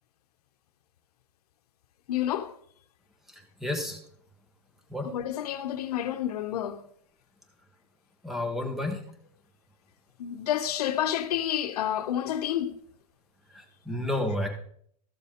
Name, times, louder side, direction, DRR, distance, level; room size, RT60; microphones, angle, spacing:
voice 1, 2.1-2.5 5.0-6.8 10.2-12.8, left 11 dB, 75° left, 0.9 m, -29 dB
voice 2, 3.6-4.0 4.9-5.1 8.2-9.0 13.5-14.5, left 1 dB, ahead, 1.0 m, -31 dB
13.5 x 6.9 x 3.6 m
supercardioid pair, 165°, 20 cm